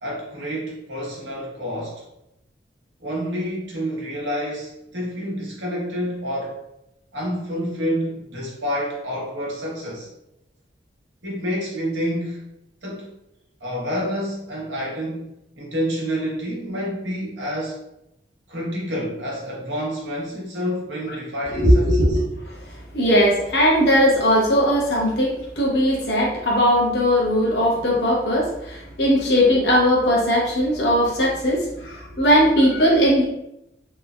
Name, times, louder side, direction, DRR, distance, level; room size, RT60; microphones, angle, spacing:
voice 1, 0.0-2.0 3.0-6.6 7.1-10.1 11.2-12.4 12.8-13.1 13.6-17.8 18.5-22.1, equal, 85° right, -4 dB, 0.9 m, -28 dB
voice 2, 21.5-33.2, equal, 65° left, -3 dB, 0.8 m, -19 dB
3.2 x 2.1 x 2.3 m, 0.85 s
head